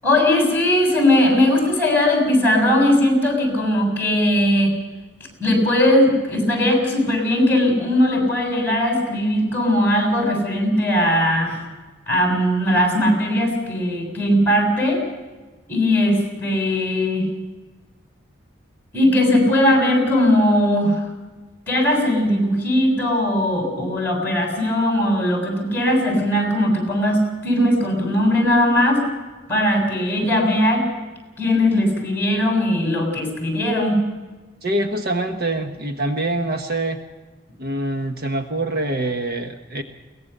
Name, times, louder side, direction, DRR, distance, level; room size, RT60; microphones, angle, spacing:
voice 1, 0.0-4.7 5.4-11.6 12.1-15.0 15.7-17.3 18.9-21.0 21.7-29.1 29.5-30.8 31.4-34.0, left 1 dB, 10° left, 1 dB, 6.8 m, -19 dB
voice 2, 34.6-37.0 37.6-39.8, right 1 dB, 50° right, 5 dB, 1.2 m, -25 dB
22.5 x 19.0 x 6.7 m, 1.3 s
head